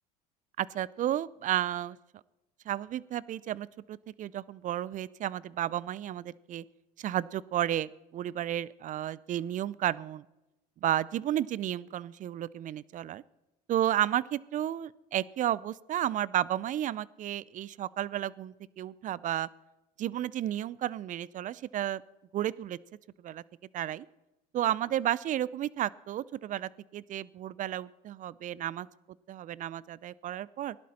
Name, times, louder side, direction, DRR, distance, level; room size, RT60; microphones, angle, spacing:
voice 1, 0.6-2.0 2.7-6.6 7.0-10.3 10.8-13.2 13.7-19.5 20.0-22.0 22.3-22.8 23.2-23.4 23.7-24.1 24.5-28.9 29.3-30.8, right 12 dB, 45° right, 22 dB, 0.5 m, -32 dB
17.0 x 11.5 x 4.3 m, 0.96 s
hypercardioid pair, 75°, 19 cm